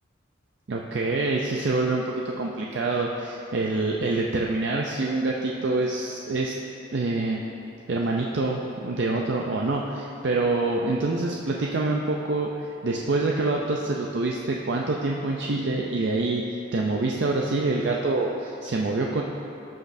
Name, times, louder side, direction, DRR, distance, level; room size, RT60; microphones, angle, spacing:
voice 1, 0.7-6.6 6.9-7.4 7.9-12.5 12.8-16.5 16.7-19.2, right 2 dB, 60° right, -1 dB, 0.5 m, -26 dB
13.5 x 6.1 x 2.6 m, 2.8 s
head